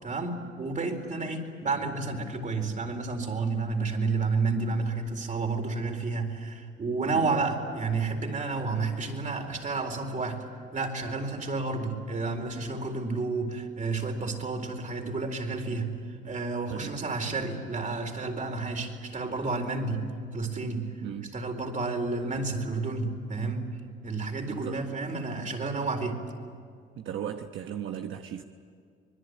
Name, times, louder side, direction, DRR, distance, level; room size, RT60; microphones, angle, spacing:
voice 1, 0.0-10.4 10.7-20.9 21.3-23.7 24.0-26.2, right 3 dB, 40° right, 4 dB, 4.3 m, -31 dB
voice 2, 21.0-21.3 24.5-24.9 27.0-28.4, right 9 dB, 75° right, 5 dB, 1.1 m, -37 dB
26.0 x 21.0 x 9.5 m, 2.2 s
cardioid pair, 90°, 20 cm